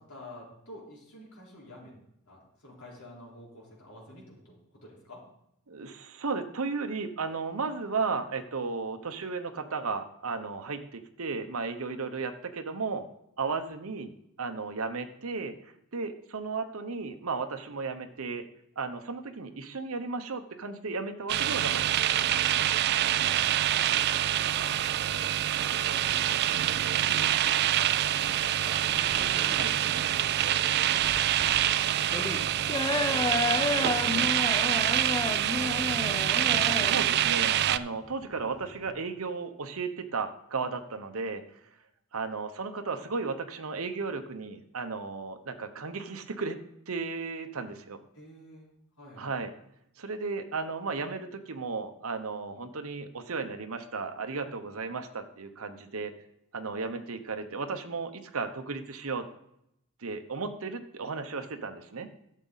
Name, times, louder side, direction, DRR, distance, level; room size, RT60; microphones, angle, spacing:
voice 1, 0.0-1.9 2.3-5.2 23.2-23.4 23.7-26.5 26.9-28.8 29.1-34.5 34.9-36.3 38.7-38.9 48.1-48.7 49.0-49.3, left 1 dB, 85° left, -5 dB, 4.2 m, -48 dB
voice 2, 5.7-13.0 13.4-14.1 14.4-15.5 15.9-18.4 18.8-21.8 29.5-29.7 36.7-41.4 42.1-46.6 46.9-48.0 49.2-49.5 50.0-56.1 56.5-59.2 60.0-62.1, right 4 dB, 70° right, 7 dB, 0.8 m, -34 dB
sound 1, 21.3-37.8, right 12 dB, 50° right, 0.3 m, -26 dB
sound 2, 28.9-38.9, left 3 dB, 15° left, 0.6 m, -32 dB
12.0 x 7.4 x 4.0 m, 0.78 s
head